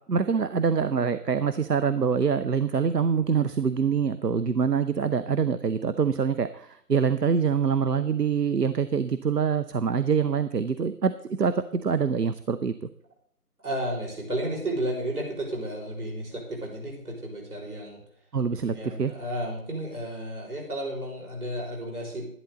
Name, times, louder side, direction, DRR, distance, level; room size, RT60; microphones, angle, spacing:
voice 1, 0.1-12.7 18.3-19.1, right 6 dB, 85° right, 12 dB, 0.8 m, -25 dB
voice 2, 13.6-18.0 18.7-22.3, right 1 dB, 65° right, -2 dB, 6.0 m, -32 dB
12.0 x 11.0 x 4.0 m, 0.68 s
figure-of-eight pair, 165°, 47 cm